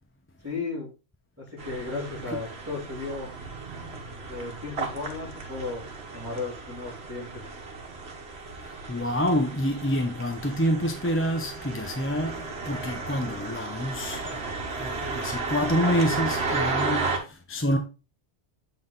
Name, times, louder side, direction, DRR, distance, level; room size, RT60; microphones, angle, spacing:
voice 1, 0.4-0.9 1.4-3.3 4.3-5.9 6.1-7.4, left 3 dB, 10° right, 3.0 m, -35 dB
sound 1, 1.6-17.2, right 3 dB, 65° right, 1.5 m, -34 dB
voice 2, 8.6-17.8, equal, 15° left, 0.6 m, -28 dB
7.6 x 4.1 x 3.8 m
omnidirectional pair, 1.2 m